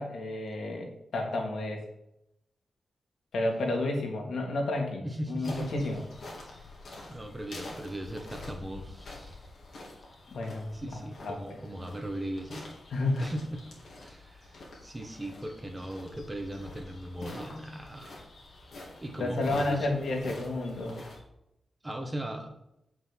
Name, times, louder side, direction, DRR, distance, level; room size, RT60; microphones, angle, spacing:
voice 1, 0.0-1.8 3.3-6.0 10.3-11.6 12.9-13.3 19.2-21.0, left 2 dB, 90° left, 1 dB, 2.6 m, -31 dB
voice 2, 5.0-6.0 6.5-6.7 7.1-9.5 10.7-12.7 13.2-13.6 14.0-18.1 19.0-20.0 21.8-22.5, right 1 dB, 10° right, 4 dB, 1.4 m, -38 dB
sound 1, 5.4-21.2, left 2 dB, 55° left, 3.0 m, -47 dB
8.2 x 6.2 x 7.4 m, 0.82 s
wide cardioid pair, 175°, 0 cm